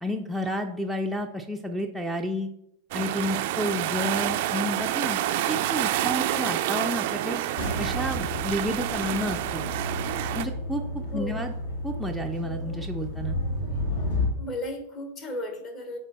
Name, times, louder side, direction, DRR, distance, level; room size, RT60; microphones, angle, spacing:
voice 1, 0.0-2.5 2.9-5.2 5.5-7.4 7.8-9.7 10.3-10.8 11.1-11.5 11.8-13.4, equal, ahead, 0 dB, 0.5 m, -30 dB
sound 1, 2.9-10.5, right 13 dB, 50° right, 0.4 m, -28 dB
voice 2, 6.1-6.5 11.1-11.4 14.4-16.0, equal, 35° left, 4 dB, 1.4 m, -35 dB
sound 2, 7.6-14.3, left 1 dB, 60° left, 1.8 m, -32 dB
8.1 x 3.3 x 4.2 m, 0.75 s
figure-of-eight pair, 90°, 0 cm